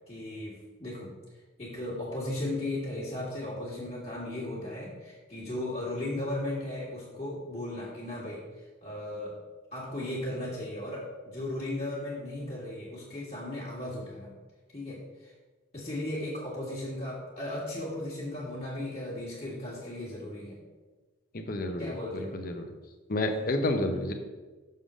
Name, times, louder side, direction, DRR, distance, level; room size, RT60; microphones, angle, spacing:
voice 1, 0.1-1.1 1.6-8.4 8.8-9.3 9.7-14.3 14.7-15.3 15.7-20.6 21.8-22.4 23.3-23.5, left 1 dB, 30° left, -7 dB, 1.6 m, -36 dB
voice 2, 21.3-22.7 23.1-24.1, left 1 dB, 45° left, 5 dB, 0.7 m, -30 dB
6.5 x 3.7 x 6.3 m, 1.3 s
head